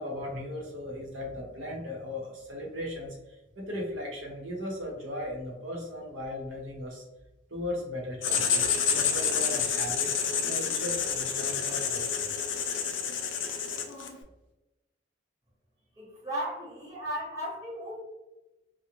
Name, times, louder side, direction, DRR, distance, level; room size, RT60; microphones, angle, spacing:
voice 1, 0.0-7.0 7.5-12.5, left 1 dB, 85° right, -1 dB, 0.8 m, -37 dB
Writing, 8.2-14.2, left 7 dB, 75° left, 0.4 m, -29 dB
voice 2, 16.0-18.0, right 1 dB, 20° right, -8 dB, 0.9 m, -35 dB
2.4 x 2.1 x 2.9 m, 1.0 s
head